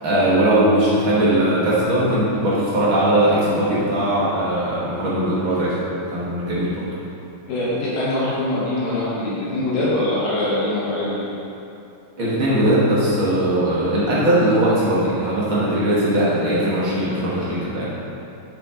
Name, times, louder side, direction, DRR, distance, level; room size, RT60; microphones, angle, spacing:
voice 1, 0.0-5.7 6.1-6.8 12.2-17.9, right 1 dB, 55° right, -9 dB, 1.5 m, -19 dB
voice 2, 7.5-11.3, left 1 dB, 70° left, -9 dB, 2.8 m, -23 dB
7.1 x 6.6 x 3.7 m, 2.8 s
omnidirectional pair, 4.3 m